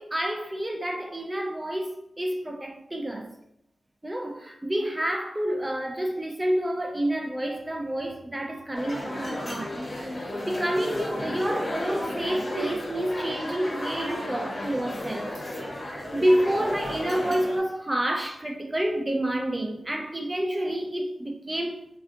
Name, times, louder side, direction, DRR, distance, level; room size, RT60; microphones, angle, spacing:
voice 1, 0.0-3.3 4.0-15.4 15.8-21.9, right 1 dB, 15° right, 0.4 m, -29 dB
sound 1, 8.7-17.6, left 1 dB, 30° left, 0.9 m, -33 dB
3.3 x 2.4 x 2.6 m
wide cardioid pair, 130°, 0 cm